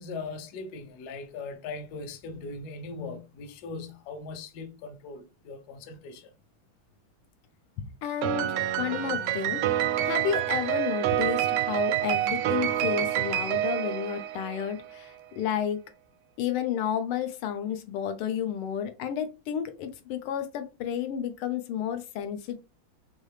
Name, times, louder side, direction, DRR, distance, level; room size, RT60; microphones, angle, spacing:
voice 1, 0.0-6.3, left 3 dB, 65° left, 1.0 m, -39 dB
voice 2, 7.8-15.8 16.4-22.6, left 9 dB, 80° left, 1.5 m, -32 dB
Piano, 8.2-14.7, right 12 dB, 85° right, 1.5 m, -27 dB
4.7 x 2.7 x 3.2 m
omnidirectional pair, 2.4 m